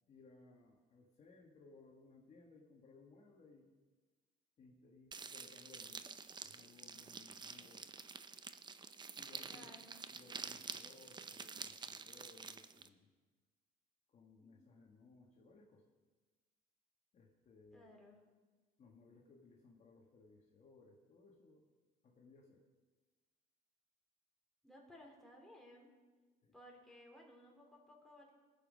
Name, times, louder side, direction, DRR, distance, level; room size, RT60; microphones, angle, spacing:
voice 1, 0.1-3.7 4.6-6.1 6.4-8.5 9.2-9.7 10.1-13.1 14.1-15.9 17.1-17.9 18.8-21.7 22.0-22.6 26.4-26.5, left 3 dB, 40° left, -1 dB, 1.7 m, -63 dB
sound 1, 5.1-12.9, right 5 dB, 25° right, 0.6 m, -49 dB
voice 2, 9.5-10.0 14.4-14.6 17.7-18.2 24.6-25.9 26.5-28.3, equal, ahead, -2 dB, 3.6 m, -59 dB
19.5 x 7.4 x 5.3 m, 1.3 s
cardioid pair, 110°, 17 cm